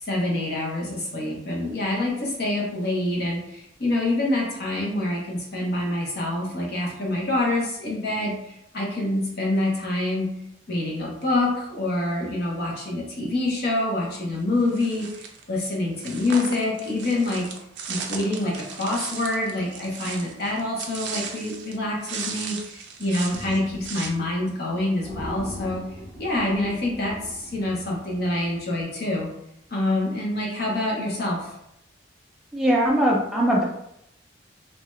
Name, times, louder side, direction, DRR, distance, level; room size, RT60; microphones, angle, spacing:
voice 1, 0.0-8.4 8.7-10.3 10.7-17.5 17.9-25.9 26.2-29.3 29.7-31.6, left 2 dB, 55° left, -3 dB, 0.9 m, -26 dB
sound 1, 14.7-15.4 16.0-21.8 22.0-24.1, right 5 dB, 65° right, 0.5 m, -36 dB
sound 2, 23.3-24.3 24.6-24.7 25.0-28.4, equal, 20° left, 0.8 m, -40 dB
voice 2, 32.5-33.6, right 1 dB, 5° right, -4 dB, 0.4 m, -20 dB
2.7 x 2.2 x 3.1 m, 0.76 s
head